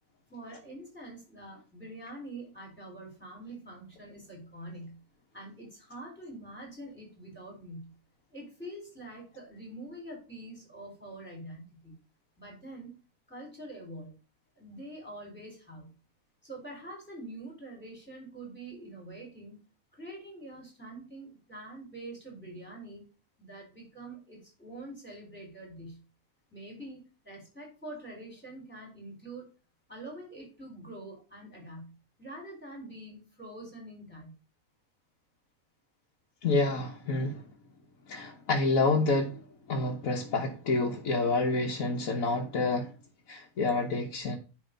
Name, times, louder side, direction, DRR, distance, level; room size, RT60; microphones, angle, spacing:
voice 1, 0.3-5.0 5.3-7.9 8.3-12.0 12.4-13.0 13.3-14.2 14.6-15.9 16.4-19.6 19.9-23.1 23.4-26.0 26.5-29.5 29.9-34.3, right 1 dB, 5° left, -1 dB, 4.0 m, -45 dB
voice 2, 36.4-37.4 38.1-42.9 43.3-44.4, left 3 dB, 75° left, -1 dB, 1.5 m, -28 dB
10.0 x 3.6 x 5.2 m, 0.33 s
omnidirectional pair, 1.4 m